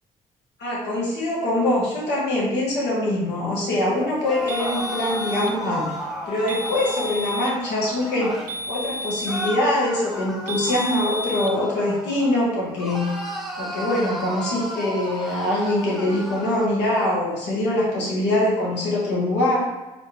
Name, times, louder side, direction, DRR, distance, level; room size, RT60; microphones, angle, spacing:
voice 1, 0.6-5.9 6.3-13.2 13.6-19.6, left 1 dB, 65° left, -5 dB, 1.5 m, -23 dB
sound 1, 4.2-8.5 9.3-12.4 12.8-16.7, equal, ahead, 0.9 m, -33 dB
sound 2, 4.5-5.6 6.5-7.6 8.5-9.6 10.5-11.6, left 1 dB, 50° right, 0.4 m, -31 dB
4.1 x 2.6 x 3.4 m, 1.1 s
hypercardioid pair, 45°, 19 cm